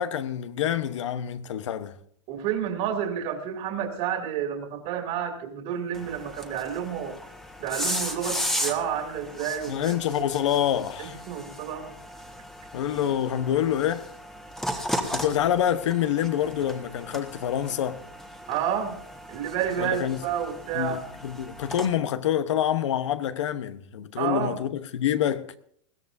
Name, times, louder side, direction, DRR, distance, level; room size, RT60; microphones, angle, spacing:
voice 1, 0.0-2.0 9.7-11.2 12.7-14.1 15.1-18.0 19.8-20.2 20.7-25.5, left 10 dB, 75° left, 1.0 m, -27 dB
voice 2, 2.3-7.2 7.6-10.3 11.0-11.9 18.5-19.0 19.3-21.0 24.2-24.6, right 9 dB, 50° right, 2.6 m, -30 dB
sound 1, 5.9-21.9, equal, 5° left, 1.3 m, -36 dB
20.5 x 15.0 x 2.7 m
hypercardioid pair, 125°, 15 cm